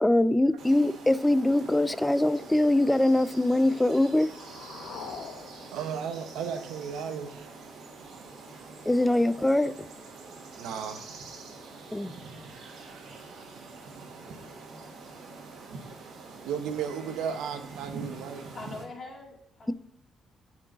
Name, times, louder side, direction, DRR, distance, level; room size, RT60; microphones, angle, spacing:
voice 1, 0.0-4.3 8.9-9.7 11.9-12.1, left 1 dB, 10° left, 0.3 m, -23 dB
sound 1, 0.6-18.8, right 3 dB, 70° right, 1.5 m, -45 dB
sound 2, 3.4-7.3, left 6 dB, 80° left, 0.9 m, -46 dB
voice 2, 5.7-7.5 10.6-11.1 16.0-18.5, right 7 dB, 90° right, 0.8 m, -35 dB
voice 3, 18.5-19.7, left 2 dB, 40° left, 1.9 m, -42 dB
7.7 x 4.5 x 4.0 m
cardioid pair, 90°, 0 cm